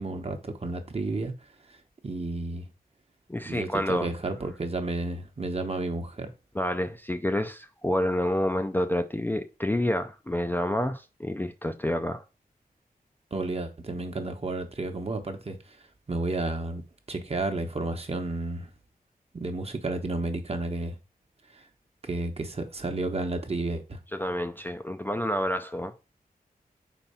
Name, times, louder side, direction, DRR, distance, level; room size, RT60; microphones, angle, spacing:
voice 1, 0.0-1.3 2.0-2.7 3.4-6.3 13.3-15.8 16.1-16.8 17.1-18.7 19.3-21.0 21.5-21.6 22.0-24.0, right 2 dB, 40° right, 1.0 m, -31 dB
voice 2, 3.3-4.1 6.5-12.2 24.1-25.9, left 1 dB, 10° left, 0.4 m, -28 dB
4.5 x 4.2 x 5.5 m
wide cardioid pair, 95°, 15 cm